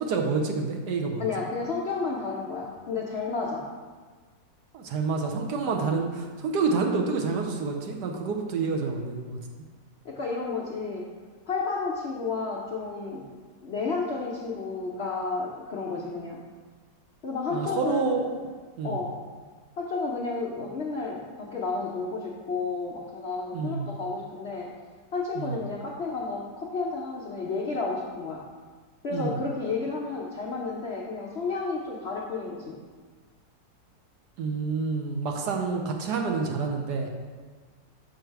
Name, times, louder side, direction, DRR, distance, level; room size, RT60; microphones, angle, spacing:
voice 1, 0.0-1.3 4.7-9.4 17.5-18.2 18.8-19.0 23.5-23.9 25.4-25.5 29.1-29.4 34.4-37.1, right 4 dB, 70° right, 2 dB, 1.2 m, -28 dB
voice 2, 1.2-3.6 10.0-11.0 11.5-13.2 13.6-16.4 17.2-18.2 18.8-19.2 19.8-24.7 25.1-28.4 29.0-32.8, left 4 dB, 65° left, -4 dB, 0.6 m, -31 dB
6.2 x 4.7 x 4.5 m, 1.4 s
omnidirectional pair, 2.0 m